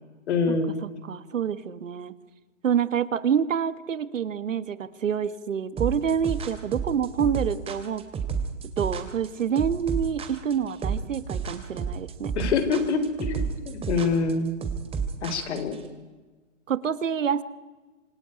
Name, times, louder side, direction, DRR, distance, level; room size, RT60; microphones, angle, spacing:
voice 1, 0.3-0.8 12.3-14.6 15.2-15.7, left 4 dB, 65° left, 10 dB, 4.2 m, -25 dB
voice 2, 0.8-2.1 2.6-8.0 8.8-12.3 16.7-17.4, right 8 dB, 85° right, 15 dB, 1.6 m, -27 dB
sound 1, 5.8-15.8, right 6 dB, 15° right, 2.6 m, -30 dB
26.5 x 19.0 x 10.0 m, 1.3 s
hypercardioid pair, 140°, 37 cm